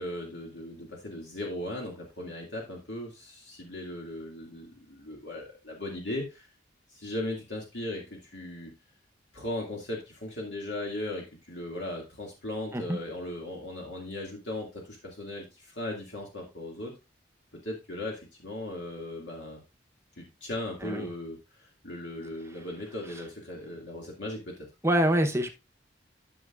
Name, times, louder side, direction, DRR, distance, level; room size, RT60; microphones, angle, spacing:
voice 1, 0.0-6.5 6.9-8.7 9.3-17.0 17.6-19.6 20.2-24.7, left 1 dB, 65° left, 2.3 m, -37 dB
voice 2, 24.8-25.5, right 1 dB, 15° right, 0.9 m, -25 dB
12.5 x 6.5 x 2.5 m
head